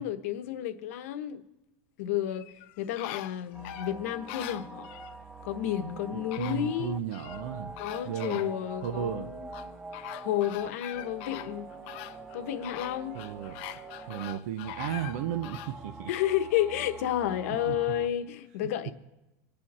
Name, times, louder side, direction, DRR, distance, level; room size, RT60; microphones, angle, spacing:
voice 1, 0.0-1.4 2.0-2.5 2.8-4.9 5.4-7.0 7.8-9.7 10.2-11.7 12.3-13.2 16.1-18.9, left 11 dB, 65° left, 1.0 m, -31 dB
sound 1, 2.3-5.2 5.9-6.0 6.3-7.4 7.8-9.0 9.5-15.8 16.2-16.3, left 15 dB, 50° left, 0.6 m, -43 dB
sound 2, 3.5-18.1, right 3 dB, 10° right, 0.5 m, -45 dB
voice 2, 6.1-7.8 8.0-8.5 8.8-9.3 11.8-12.0 13.1-13.6 14.1-16.1 17.7-17.9 18.6-18.7, right 9 dB, 70° right, 0.8 m, -35 dB
24.5 x 8.7 x 4.3 m
supercardioid pair, 180°, 8 cm